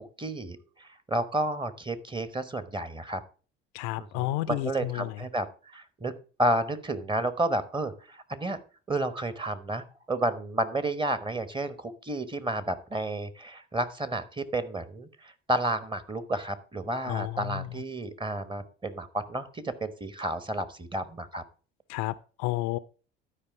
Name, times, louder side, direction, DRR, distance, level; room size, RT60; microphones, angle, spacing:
voice 1, 0.0-3.2 4.0-6.1 6.4-8.6 8.9-21.4, right 1 dB, 15° right, 12 dB, 1.2 m, -31 dB
voice 2, 3.7-5.2 17.0-17.7 21.9-22.8, left 17 dB, 65° left, 16 dB, 0.5 m, -31 dB
12.0 x 5.1 x 4.8 m, 0.37 s
hypercardioid pair, 60°, 30 cm